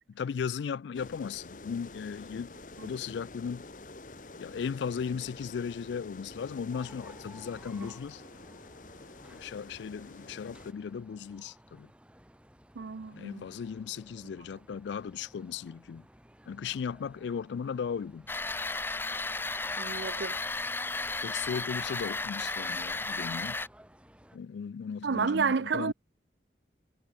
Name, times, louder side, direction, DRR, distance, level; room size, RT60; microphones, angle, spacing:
voice 1, 0.1-2.5 2.8-3.7 4.4-8.2 9.3-11.9 13.1-16.1 16.5-18.3 21.2-23.6 24.3-25.9, left 6 dB, 75° left, 0.3 m, -36 dB
sound 1, 0.9-10.7, left 2 dB, 45° left, 1.3 m, -48 dB
sound 2, 6.7-24.4, equal, 5° right, 6.1 m, -57 dB
voice 2, 12.8-13.5 19.8-20.4 25.0-25.9, right 5 dB, 75° right, 0.6 m, -31 dB
sound 3, 18.3-23.7, left 3 dB, 10° left, 0.6 m, -34 dB
head